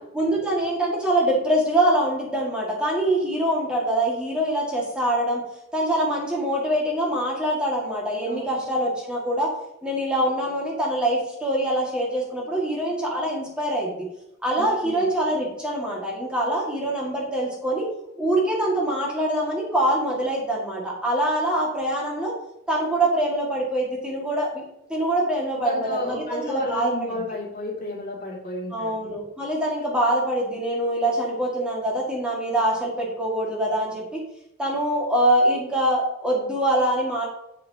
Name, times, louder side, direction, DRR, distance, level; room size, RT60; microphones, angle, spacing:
voice 1, 0.1-5.4 5.7-9.5 9.8-14.1 14.4-17.8 18.2-22.3 22.7-24.6 24.9-27.2 28.7-34.0 34.6-37.3, right 1 dB, 5° right, -4 dB, 1.8 m, -24 dB
voice 2, 14.6-15.1 25.6-29.0, left 1 dB, 45° left, -3 dB, 2.5 m, -32 dB
7.9 x 7.9 x 2.8 m, 0.85 s
head